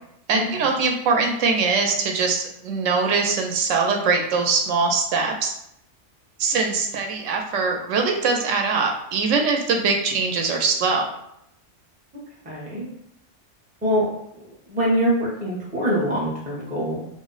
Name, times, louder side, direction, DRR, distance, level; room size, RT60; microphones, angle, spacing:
voice 1, 0.3-5.5 6.4-11.1, right 4 dB, 80° right, 2 dB, 0.9 m, -22 dB
voice 2, 12.4-12.9 13.8-14.1 14.7-17.0, equal, 10° right, -5 dB, 0.5 m, -23 dB
2.5 x 2.0 x 3.8 m, 0.77 s
omnidirectional pair, 1.3 m